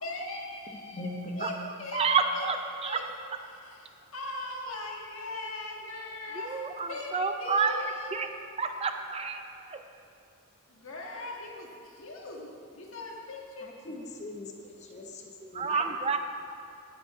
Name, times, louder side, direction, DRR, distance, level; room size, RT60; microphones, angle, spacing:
voice 1, 0.0-1.1 1.4-1.5 1.8-2.0 2.3-2.5 2.8-3.0 3.5-9.1 10.7-13.7, left 2 dB, 70° left, -1 dB, 1.6 m, -40 dB
voice 2, 0.9-1.4 13.6-15.9, left 2 dB, 35° left, 1 dB, 0.8 m, -40 dB
voice 3, 1.9-2.6 2.8-3.0 6.4-7.8 8.1-8.3 8.6-9.8 15.4-16.2, right 5 dB, 30° right, 7 dB, 0.4 m, -29 dB
16.5 x 5.5 x 4.7 m, 2.5 s
head